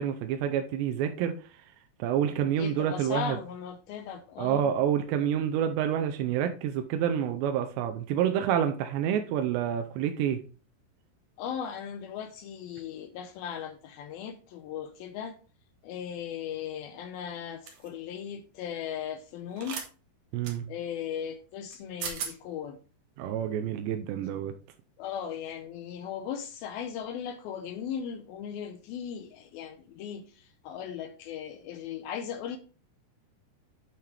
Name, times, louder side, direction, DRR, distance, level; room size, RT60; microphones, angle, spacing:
voice 1, 0.0-1.6 2.0-3.4 4.4-10.4 20.3-20.7 23.2-24.6, right 9 dB, 90° right, 2.9 m, -28 dB
voice 2, 2.6-4.7 11.4-15.4 15.8-19.8 20.7-22.8 25.0-32.6, left 8 dB, 80° left, 2.2 m, -37 dB
sound 1, 17.7-17.9 19.6-19.9 20.4-20.6 21.7-21.8 22.0-22.3, right 7 dB, 65° right, 2.0 m, -36 dB
9.2 x 5.7 x 3.3 m
omnidirectional pair, 4.9 m